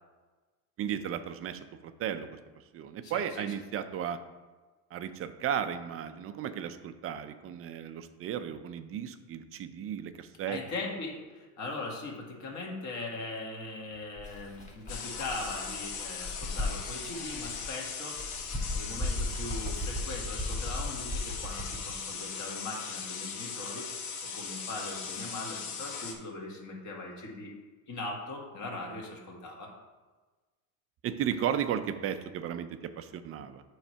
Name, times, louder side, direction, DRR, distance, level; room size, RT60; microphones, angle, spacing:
voice 1, 0.8-2.4 2.7-4.2 4.9-10.6 31.0-33.6, right 9 dB, 35° right, 10 dB, 0.5 m, -35 dB
voice 2, 3.0-3.5 10.5-18.5 18.7-27.5 27.9-29.7, left 2 dB, 45° left, -2 dB, 1.9 m, -40 dB
Bird, 14.2-17.7 18.1-21.9, left 1 dB, 15° left, 1.7 m, -37 dB
sound 1, 14.9-26.1, left 6 dB, 80° left, 1.2 m, -39 dB
7.1 x 3.2 x 5.6 m, 1.3 s
supercardioid pair, 105°, 41 cm